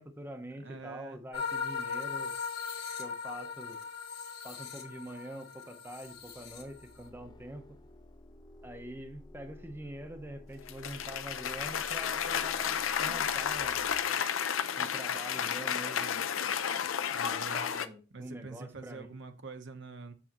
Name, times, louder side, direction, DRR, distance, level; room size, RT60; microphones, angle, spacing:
voice 1, 0.0-2.3 3.0-3.8 4.4-7.6 8.6-13.9 14.8-16.3 17.2-19.1, right 1 dB, 10° right, 0.7 m, -45 dB
voice 2, 0.6-1.2 17.1-17.6 18.1-20.1, right 4 dB, 65° right, 0.9 m, -45 dB
sound 1, 1.3-7.1, left 5 dB, 55° left, 1.6 m, -39 dB
sound 2, 6.0-14.0, left 1 dB, 20° left, 0.6 m, -53 dB
Cheering / Applause, 10.7-17.9, left 8 dB, 85° left, 0.6 m, -32 dB
7.2 x 7.0 x 2.9 m
head